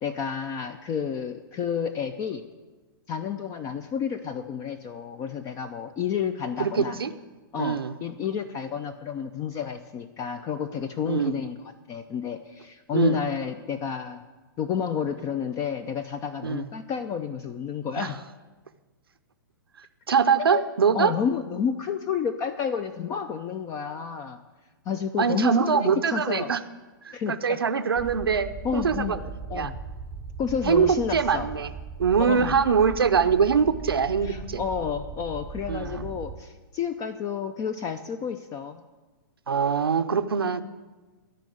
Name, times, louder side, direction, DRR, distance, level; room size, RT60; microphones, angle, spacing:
voice 1, 0.0-2.4 3.1-7.0 7.5-14.2 14.6-18.2 20.5-20.6 20.9-24.4 24.9-26.5 27.1-27.6 28.6-29.8 30.4-31.5 32.2-32.6 34.2-38.8, left 7 dB, 30° left, 10 dB, 0.5 m, -30 dB
voice 2, 6.6-7.1 7.6-7.9 11.0-11.3 12.9-13.2 16.4-16.7 18.0-18.1 20.1-21.1 25.2-26.6 27.0-29.2 29.5-29.7 30.6-31.7 32.0-34.6 35.7-36.1 39.5-40.6, right 6 dB, 85° right, 10 dB, 0.7 m, -23 dB
sound 1, 28.0-36.4, right 5 dB, 10° right, 0.7 m, -39 dB
13.0 x 5.4 x 9.2 m, 1.3 s
hypercardioid pair, 120°, 12 cm